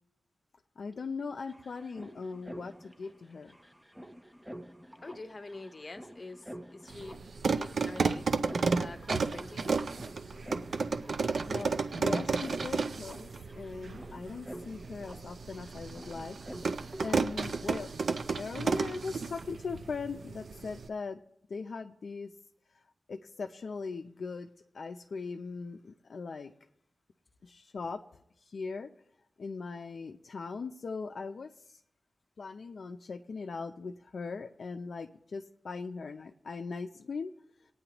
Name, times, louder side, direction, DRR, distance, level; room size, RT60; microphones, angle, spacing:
voice 1, 0.8-3.6 11.5-16.4 17.0-17.9 18.4-21.2 21.5-22.3 23.1-24.5 24.7-26.5 27.4-28.0 28.5-28.9 29.4-31.8 32.4-37.3, left 4 dB, 65° left, 5 dB, 0.4 m, -40 dB
sound 1, 0.9-1.0 1.2-18.0, equal, 5° right, 0.6 m, -49 dB
voice 2, 5.0-7.2 7.4-8.3 8.8-9.8, left 2 dB, 30° left, 7 dB, 0.8 m, -45 dB
sound 2, 6.9-20.9, right 4 dB, 65° right, 0.5 m, -33 dB
19.5 x 9.2 x 2.9 m, 0.75 s
wide cardioid pair, 125°, 0 cm